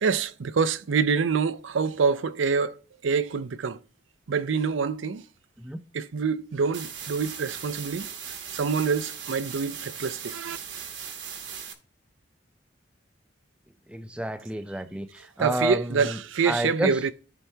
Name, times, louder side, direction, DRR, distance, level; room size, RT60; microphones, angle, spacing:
voice 1, 0.0-3.8 4.3-5.3 5.9-8.1 8.5-10.6 15.4-17.1, right 5 dB, 90° right, 0.5 m, -26 dB
sound 1, 6.7-11.7, right 7 dB, 70° right, 1.1 m, -38 dB
voice 2, 13.9-16.2 16.5-16.9, right 1 dB, 5° right, 0.5 m, -30 dB
13.5 x 4.6 x 2.8 m
head